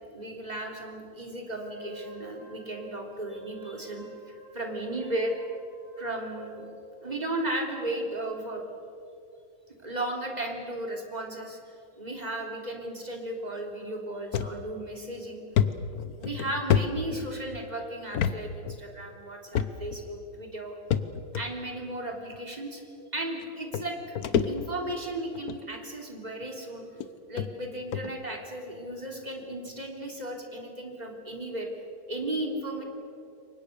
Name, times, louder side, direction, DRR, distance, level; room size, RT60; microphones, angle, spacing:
voice 1, 0.1-5.4 6.0-6.7 7.0-8.6 9.8-11.6 12.0-15.4 16.2-20.7 21.3-22.8 23.1-24.0 24.4-26.9 27.3-31.7 32.1-32.8, right 1 dB, 20° right, 2 dB, 3.3 m, -35 dB
Wind instrument woodwind instrument, 1.5-7.1, right 3 dB, 65° right, 6.4 m, -48 dB
sound 1, 14.3-14.5 15.0-15.1 15.6-17.6 18.1-18.4 18.6-18.8 19.5-20.0 20.9-21.4 22.3-22.4 23.4-23.5 23.7-24.9 25.3-25.6 26.4-26.5 27.0-27.1 27.4-27.5 27.9-28.1, left 8 dB, 55° left, 1.2 m, -27 dB
28.5 x 24.0 x 6.8 m, 2.6 s
omnidirectional pair, 2.3 m